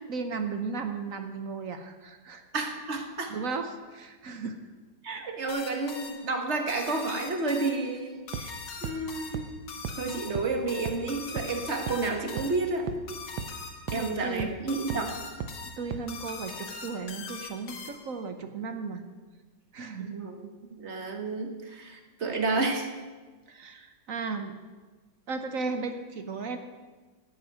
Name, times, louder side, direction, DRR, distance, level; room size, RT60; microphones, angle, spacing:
voice 1, 0.1-2.4 3.3-4.6 13.9-14.5 15.8-19.0 19.7-20.1 23.5-24.6 25.3-26.6, right 4 dB, 55° right, 7 dB, 1.0 m, -35 dB
voice 2, 2.5-3.4 5.0-8.5 8.8-9.5 10.0-12.9 13.9-15.1 20.0-22.9, right 3 dB, 35° right, 4 dB, 1.5 m, -31 dB
sound 1, 5.5-18.2, left 5 dB, 65° left, 2.0 m, -42 dB
sound 2, 8.3-8.4 8.8-8.9 9.3-9.4 9.8-9.9 10.4-10.5 10.9-11.0 11.4-11.5 11.9-12.0 12.4-12.5 12.9-13.0 13.4-13.5 13.9-14.0 14.4-14.5 14.9-15.0 15.4-15.5 15.9-16.0, right 8 dB, 85° right, 1.6 m, -33 dB
11.0 x 8.6 x 9.1 m, 1.3 s
omnidirectional pair, 2.1 m